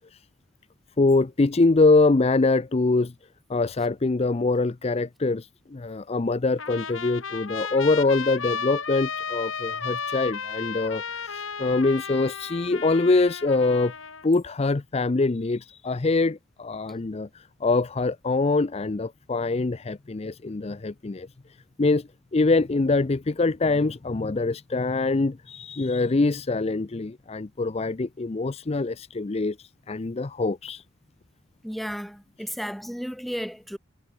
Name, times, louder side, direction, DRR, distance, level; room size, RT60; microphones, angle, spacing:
voice 1, 1.0-3.1 3.5-13.9 14.2-21.3 21.8-30.8, left 3 dB, 30° left, 0.5 m, -24 dB
Trumpet, 6.6-14.3, left 6 dB, 80° left, 3.9 m, -34 dB
voice 2, 31.6-33.8, equal, ahead, 2.2 m, -33 dB
head